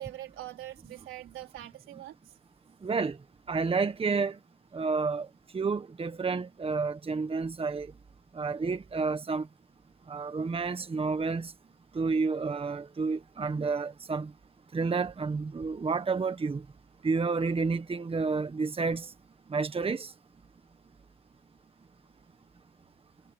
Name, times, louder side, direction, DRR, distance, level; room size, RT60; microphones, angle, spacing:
voice 1, 0.0-2.2, right 14 dB, 85° right, 4.2 m, -43 dB
voice 2, 2.8-3.2 3.5-4.4 4.7-5.3 5.5-7.9 8.3-9.5 10.1-11.5 11.9-14.3 14.7-16.6 17.0-19.1 19.5-20.1, right 4 dB, 30° right, 1.5 m, -30 dB
cardioid pair, 90°, 20 cm